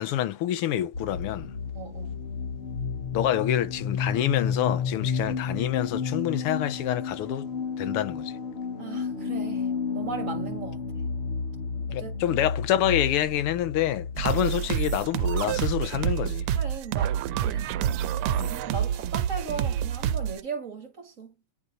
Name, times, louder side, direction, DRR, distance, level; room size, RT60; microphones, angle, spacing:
voice 1, 0.0-1.5 3.1-7.5 7.8-8.3 11.9-16.5 18.3-18.5, left 12 dB, 90° left, 1.7 m, -27 dB
sound 1, 0.9-16.5, left 5 dB, 35° left, 1.4 m, -32 dB
voice 2, 1.7-2.3 8.8-11.1 11.9-12.4 16.5-21.3, right 5 dB, 40° right, 1.8 m, -38 dB
sound 2, 14.2-20.4, right 10 dB, 90° right, 1.5 m, -27 dB
9.8 x 3.9 x 2.6 m
omnidirectional pair, 2.4 m